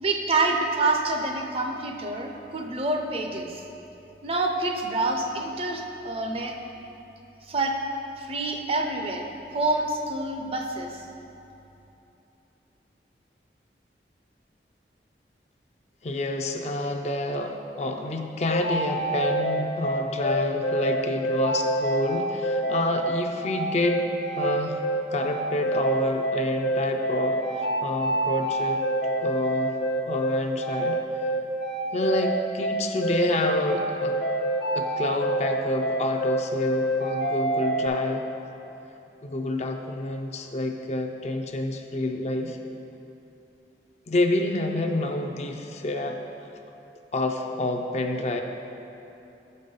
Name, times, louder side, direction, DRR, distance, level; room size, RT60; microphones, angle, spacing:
voice 1, 0.0-3.6 4.2-6.5 7.5-7.8 8.2-9.3 9.5-11.0, right 2 dB, 35° right, 3 dB, 0.5 m, -27 dB
voice 2, 16.0-24.1 24.4-28.8 29.2-29.8 30.1-31.0 31.9-34.2 34.7-38.3 39.2-42.6 44.1-46.2 47.1-48.4, left 1 dB, 40° left, 3 dB, 0.4 m, -28 dB
sound 1, 18.5-37.9, right 1 dB, 55° left, 0.8 m, -27 dB
7.2 x 5.3 x 5.3 m, 3.0 s
head